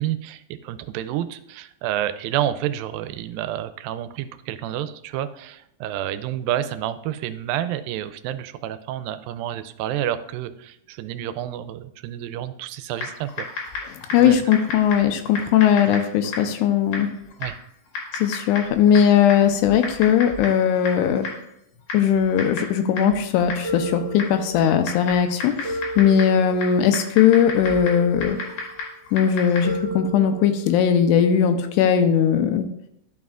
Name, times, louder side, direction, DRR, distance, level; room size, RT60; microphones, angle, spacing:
voice 1, 0.0-13.5 14.2-14.5 15.9-16.0 17.4-17.6, right 12 dB, 85° right, 12 dB, 2.3 m, -29 dB
Typing, 12.9-29.8, left 4 dB, 60° left, 2.8 m, -35 dB
voice 2, 14.1-17.1 18.2-21.3 21.9-28.4 29.1-32.7, left 8 dB, 80° left, 7 dB, 1.9 m, -19 dB
sound 1, 23.6-24.8 25.6-26.8 27.6-28.8 29.6-30.8, right 1 dB, 50° right, 2.5 m, -33 dB
12.0 x 5.3 x 2.4 m, 0.73 s
omnidirectional pair, 4.1 m